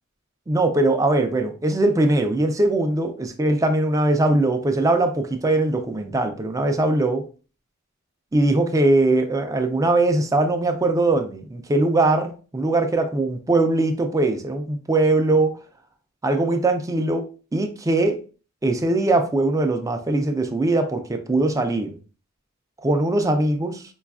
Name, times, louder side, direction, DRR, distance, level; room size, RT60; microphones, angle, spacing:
voice 1, 0.5-7.3 8.3-15.6 16.2-17.3 17.5-18.2 18.6-22.0 22.8-23.8, right 2 dB, 15° right, 0.3 m, -21 dB
4.7 x 2.3 x 2.3 m
head